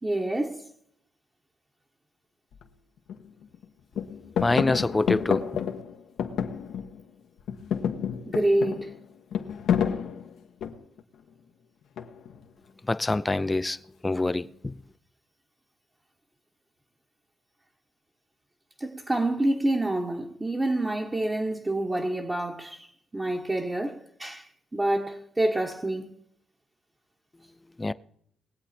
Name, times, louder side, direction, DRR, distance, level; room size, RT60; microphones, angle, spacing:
voice 1, 0.0-0.7 8.3-8.9 18.8-22.9 23.1-26.1, right 1 dB, 20° right, 1.3 m, -27 dB
sound 1, 2.5-2.6 3.1-3.6 3.9-7.1 7.4-11.0 12.0-12.4, left 8 dB, 75° left, 1.3 m, -30 dB
voice 2, 4.4-5.5 12.9-13.8 14.0-14.7 27.8-27.9, left 2 dB, 20° left, 0.6 m, -25 dB
20.5 x 8.2 x 4.3 m
cardioid pair, 90°, 0 cm